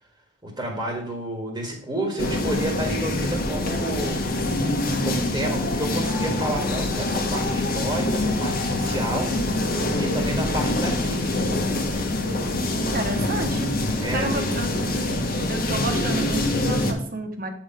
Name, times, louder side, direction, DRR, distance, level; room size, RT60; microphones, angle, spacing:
voice 1, 0.4-4.2 5.0-9.4 9.9-11.5 14.0-14.4 14.9-15.2, right 1 dB, 20° right, 1 dB, 1.6 m, -30 dB
sound 1, 2.2-16.9, left 2 dB, 50° left, 1.3 m, -25 dB
voice 2, 12.9-13.7 14.1-14.9 15.5-17.5, right 2 dB, 50° right, 5 dB, 1.4 m, -30 dB
8.5 x 4.4 x 5.2 m, 0.62 s
head